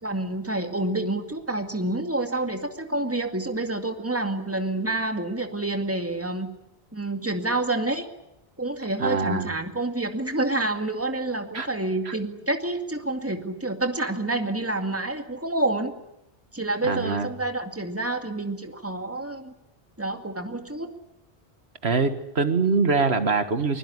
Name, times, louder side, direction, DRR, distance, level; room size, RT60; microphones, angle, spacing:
voice 1, 0.0-6.5 6.9-8.1 8.6-15.9 16.5-19.5 20.0-20.9, right 2 dB, 15° right, 6 dB, 2.3 m, -28 dB
voice 2, 9.0-9.5 11.5-11.7 12.1-12.2 16.8-17.3 21.8-23.8, right 4 dB, 80° right, 9 dB, 1.9 m, -24 dB
23.5 x 22.5 x 9.8 m, 0.82 s
omnidirectional pair, 1.0 m